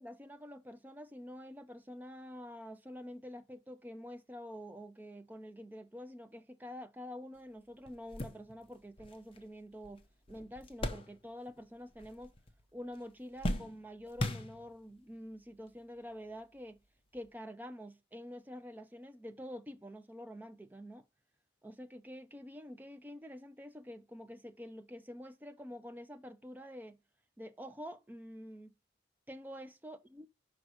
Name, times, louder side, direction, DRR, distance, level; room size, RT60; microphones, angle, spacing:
voice 1, 0.0-12.3 12.7-16.8 17.1-21.1 21.6-27.0 27.4-28.7 29.3-30.3, equal, 10° right, 0.5 m, -47 dB
sound 1, 7.4-7.5 7.9-11.6 11.9-12.6 12.9-15.0 15.7-15.8 17.1-17.3, left 1 dB, 30° left, 0.8 m, -40 dB
5.3 x 4.7 x 6.3 m
head